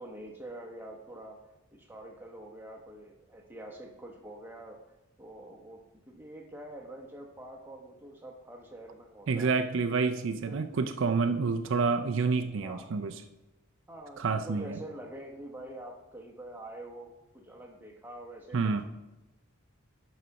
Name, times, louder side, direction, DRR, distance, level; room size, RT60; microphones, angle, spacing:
voice 1, 0.0-4.8 5.2-9.6 10.0-10.7 12.6-12.9 13.9-18.8, right 1 dB, 10° right, 0 dB, 0.9 m, -46 dB
voice 2, 9.3-13.1 14.2-14.8 18.5-18.8, right 4 dB, 60° right, 8 dB, 0.4 m, -28 dB
11.0 x 4.0 x 5.8 m, 1.0 s
head